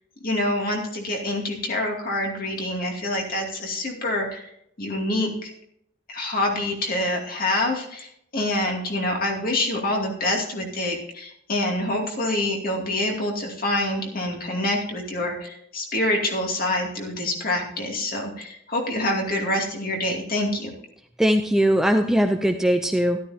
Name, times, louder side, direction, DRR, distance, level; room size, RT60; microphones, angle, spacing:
voice 1, 0.2-4.5 4.8-5.5 6.1-20.7, left 1 dB, 45° left, 0 dB, 2.5 m, -26 dB
voice 2, 21.2-23.2, equal, ahead, 5 dB, 0.4 m, -20 dB
13.0 x 12.5 x 2.8 m, 0.73 s
head